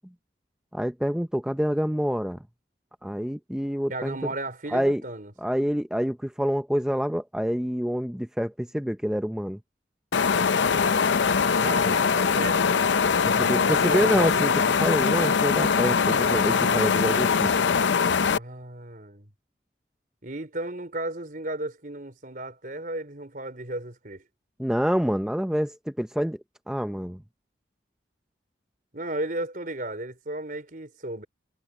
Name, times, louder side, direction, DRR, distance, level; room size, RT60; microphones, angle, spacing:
voice 1, 0.7-2.4 3.0-4.3 4.7-5.0 5.4-9.6 13.2-14.5 14.8-17.5 24.6-26.4 26.7-27.2, equal, 5° right, 0.6 m, -27 dB
voice 2, 3.9-5.3 11.6-12.7 13.7-14.5 18.3-19.3 20.2-24.2 28.9-31.3, right 1 dB, 50° right, 4.2 m, -34 dB
sound 1, 10.1-18.4, left 6 dB, 85° left, 0.6 m, -22 dB
head